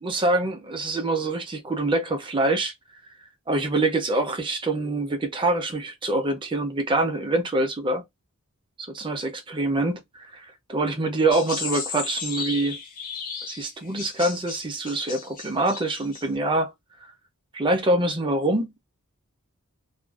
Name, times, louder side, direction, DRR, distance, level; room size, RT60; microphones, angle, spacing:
voice 1, 0.0-2.7 3.5-8.0 8.8-12.8 13.5-16.7 17.5-18.7, right 2 dB, 25° right, 0.5 m, -25 dB
sound 1, 11.3-16.2, left 5 dB, 40° left, 0.6 m, -35 dB
2.4 x 2.2 x 2.3 m
head